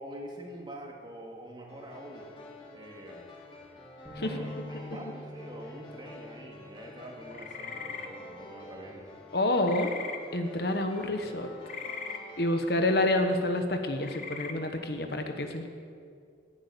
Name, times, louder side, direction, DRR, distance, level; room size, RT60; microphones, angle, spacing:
voice 1, 0.0-2.3 2.7-3.2 4.2-9.1, right 1 dB, 25° right, 0 dB, 2.3 m, -45 dB
sound 1, 1.7-12.8, left 1 dB, 30° left, 2.9 m, -49 dB
sound 2, 4.1-7.6, left 2 dB, ahead, 4.1 m, -45 dB
sound 3, 7.3-8.1 9.6-10.2 11.7-12.2 14.0-14.5, left 6 dB, 45° left, 1.2 m, -39 dB
voice 2, 9.3-9.9 10.3-11.5 12.4-15.7, left 1 dB, 60° left, 5 dB, 1.3 m, -28 dB
14.5 x 11.0 x 8.5 m, 2.3 s
head